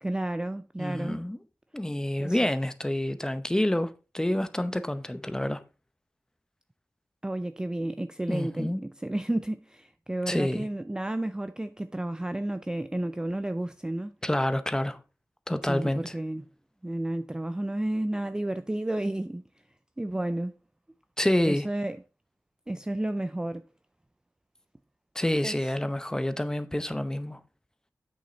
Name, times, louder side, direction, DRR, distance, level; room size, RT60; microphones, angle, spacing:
voice 1, 0.0-1.2 2.2-2.4 7.2-14.1 15.6-16.4 16.8-19.4 20.0-20.5 21.5-22.0 22.7-23.6 25.4-25.7, right 1 dB, 10° right, 0.4 m, -31 dB
voice 2, 0.8-1.4 1.7-5.6 8.3-8.8 10.3-10.7 14.2-15.0 15.5-16.1 21.2-21.7 25.1-27.4, left 1 dB, 10° left, 0.7 m, -28 dB
8.3 x 6.3 x 3.9 m
wide cardioid pair, 110°, 6 cm